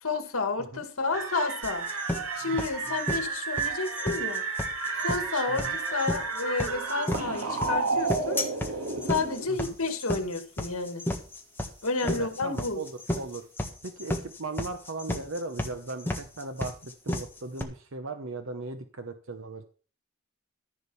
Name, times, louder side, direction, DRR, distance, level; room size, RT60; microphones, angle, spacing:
voice 1, 0.0-1.9 2.4-4.4 5.0-8.4 9.1-11.1 11.8-12.8, left 3 dB, 80° left, 2.1 m, -31 dB
plane crashing, 1.1-9.5, right 4 dB, 85° right, 1.9 m, -31 dB
sound 1, 1.6-17.6, left 1 dB, 10° left, 1.5 m, -33 dB
voice 2, 12.0-13.4 13.8-19.7, right 3 dB, 65° right, 0.9 m, -38 dB
14.0 x 5.0 x 7.0 m
head